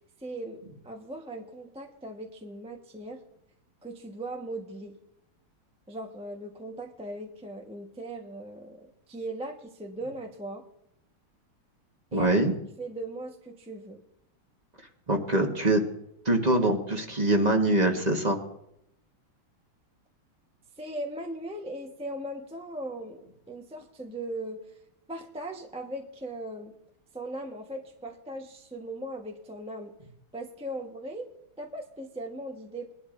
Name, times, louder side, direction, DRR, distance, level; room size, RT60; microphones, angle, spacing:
voice 1, 0.2-3.2 3.8-5.0 5.9-10.6 12.1-12.3 12.8-14.0 20.8-24.6 25.1-26.7 27.1-29.9 30.3-31.3 31.6-32.9, right 1 dB, 5° right, 2 dB, 0.7 m, -38 dB
voice 2, 12.1-12.5 15.1-15.8 16.2-18.4, right 1 dB, 25° right, 3 dB, 1.2 m, -24 dB
21.0 x 11.5 x 2.6 m, 0.79 s
omnidirectional pair, 2.3 m